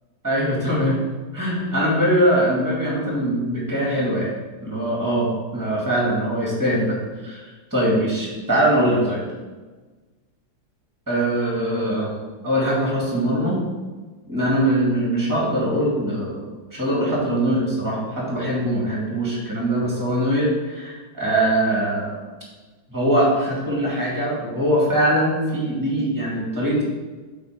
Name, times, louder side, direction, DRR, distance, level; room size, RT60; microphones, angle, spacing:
voice 1, 0.2-1.0 1.3-4.3 4.6-7.0 7.2-9.2 11.1-12.1 12.4-13.6 14.3-16.4 16.7-22.2 22.9-26.8, right 1 dB, 10° right, -5 dB, 2.1 m, -22 dB
7.9 x 4.2 x 5.1 m, 1.3 s
omnidirectional pair, 2.2 m